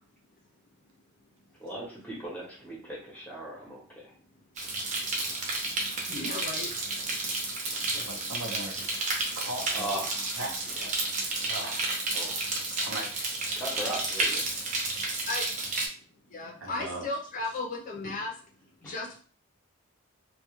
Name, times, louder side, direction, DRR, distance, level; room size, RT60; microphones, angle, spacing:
voice 1, 1.6-4.1 9.7-10.4 10.7-11.7 12.1-12.4 13.5-14.5 18.8-18.9, right 1 dB, 5° left, -4 dB, 0.8 m, -39 dB
sound 1, 4.6-15.9, right 2 dB, 35° right, 0.5 m, -31 dB
voice 2, 6.1-6.9 15.3-15.5 16.3-18.4 18.8-19.2, left 2 dB, 40° left, 0 dB, 0.5 m, -35 dB
voice 3, 7.9-9.0 9.4-9.9 10.3-10.9 11.4-11.8 12.8-13.4 16.6-17.1, right 1 dB, 75° right, 0 dB, 0.7 m, -39 dB
2.2 x 2.2 x 3.0 m, 0.41 s
head